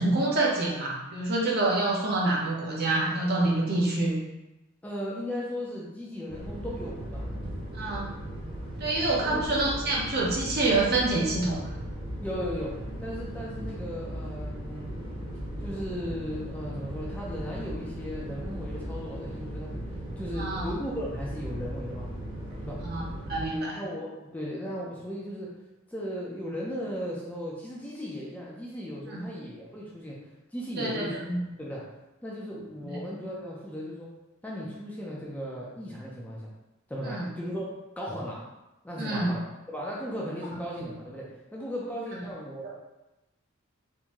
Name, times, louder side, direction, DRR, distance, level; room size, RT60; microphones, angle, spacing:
voice 1, 0.0-4.2 7.7-8.1 8.8-11.7 20.3-20.7 22.8-23.0 23.3-23.8 29.1-29.3 30.8-31.4 37.0-37.3 39.0-39.3 40.8-40.9 42.6-42.7, right 2 dB, 50° right, -3 dB, 0.8 m, -27 dB
voice 2, 4.8-7.3 9.2-9.5 12.2-14.9 15.6-19.7 20.2-22.1 22.6-22.9 23.7-25.6 25.9-31.2 31.6-31.8 32.2-34.1 34.4-36.5 36.9-38.4 38.8-42.7, equal, 5° left, -5 dB, 0.5 m, -36 dB
sound 1, 6.3-23.5, equal, 25° right, 0.9 m, -37 dB
3.6 x 2.6 x 3.0 m, 0.98 s
head